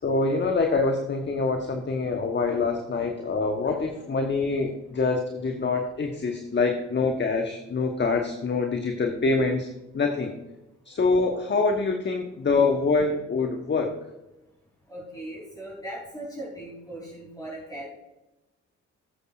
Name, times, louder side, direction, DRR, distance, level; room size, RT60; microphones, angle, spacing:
voice 1, 0.0-10.3 10.8-14.0, left 3 dB, 30° left, 4 dB, 1.1 m, -25 dB
voice 2, 14.9-17.9, right 1 dB, 10° left, -3 dB, 3.5 m, -38 dB
16.0 x 8.3 x 2.5 m, 0.97 s
hypercardioid pair, 45°, 37 cm